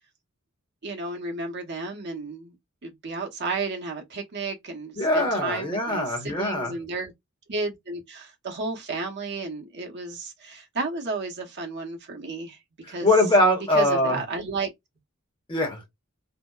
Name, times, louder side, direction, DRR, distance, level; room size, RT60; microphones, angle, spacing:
voice 1, 0.8-2.5 2.8-7.1 7.5-12.6 12.9-13.1 13.7-14.7, right 3 dB, 55° right, 0.8 m, -32 dB
voice 2, 5.0-6.7 12.8-14.2 15.5-15.9, left 1 dB, 25° left, 0.9 m, -22 dB
2.7 x 2.0 x 2.2 m
head